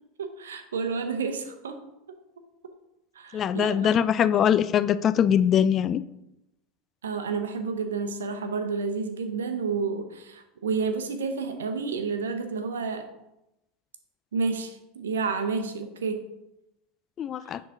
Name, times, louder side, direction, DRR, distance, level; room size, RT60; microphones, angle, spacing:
voice 1, 0.2-1.8 3.1-4.2 7.0-13.1 14.3-16.2 17.5-17.6, right 5 dB, 85° right, 7 dB, 0.8 m, -30 dB
voice 2, 3.3-6.0 17.2-17.6, left 9 dB, 35° left, 15 dB, 0.3 m, -22 dB
9.7 x 3.9 x 3.8 m, 0.89 s
hypercardioid pair, 90°, 0 cm